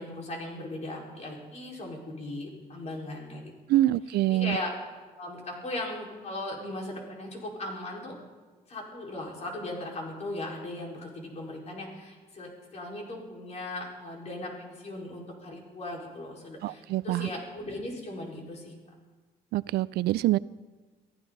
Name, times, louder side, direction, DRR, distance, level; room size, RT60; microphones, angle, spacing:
voice 1, 0.0-3.8 4.3-4.7 5.2-8.1 8.7-18.7, left 1 dB, 40° left, -1 dB, 4.8 m, -38 dB
voice 2, 3.7-4.6 16.6-17.3 19.5-20.4, right 15 dB, 70° right, 19 dB, 0.4 m, -25 dB
23.5 x 14.5 x 4.1 m, 1.3 s
cardioid pair, 110°, 17 cm